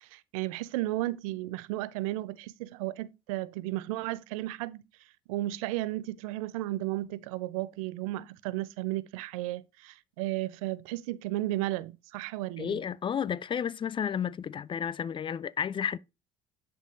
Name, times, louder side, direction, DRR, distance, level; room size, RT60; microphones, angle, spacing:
voice 1, 0.0-4.8 5.3-12.8, right 17 dB, 85° right, 0.4 m, -34 dB
voice 2, 12.6-16.0, left 8 dB, 30° left, 0.3 m, -32 dB
10.5 x 3.7 x 2.6 m
hypercardioid pair, 70°, 17 cm